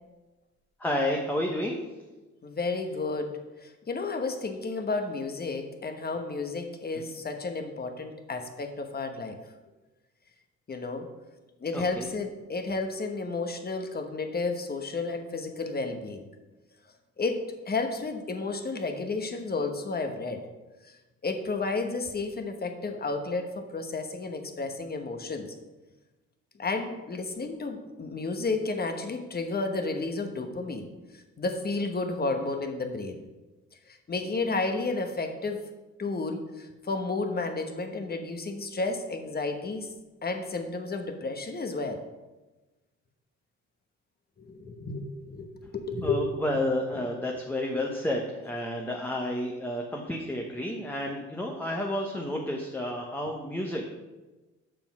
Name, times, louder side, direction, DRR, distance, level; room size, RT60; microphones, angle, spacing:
voice 1, 0.8-1.8 6.9-7.1 11.7-12.1 46.0-53.9, left 1 dB, 5° left, 0 dB, 1.0 m, -31 dB
voice 2, 2.4-9.4 10.7-11.1 11.6-16.3 17.2-20.4 21.2-25.5 26.6-30.9 31.4-33.2 34.1-35.6 36.0-39.9 40.2-42.0 44.4-46.2 47.2-47.4, left 3 dB, 30° left, 6 dB, 1.2 m, -32 dB
6.8 x 5.8 x 6.0 m, 1.1 s
cardioid pair, 90°, 30 cm